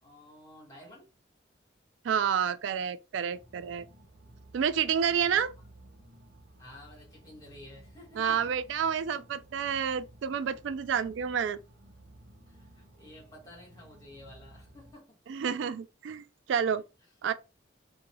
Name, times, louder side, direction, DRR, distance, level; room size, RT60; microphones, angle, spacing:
voice 1, 0.0-1.1 5.2-5.4 6.6-8.5 12.5-15.2, left 1 dB, 20° left, 1.5 m, -52 dB
voice 2, 2.0-3.9 4.5-5.5 8.2-11.6 15.3-16.8 17.2-17.3, right 7 dB, 85° right, 0.3 m, -29 dB
sound 1, 3.3-14.9, right 1 dB, 55° right, 1.0 m, -55 dB
2.6 x 2.6 x 3.0 m
head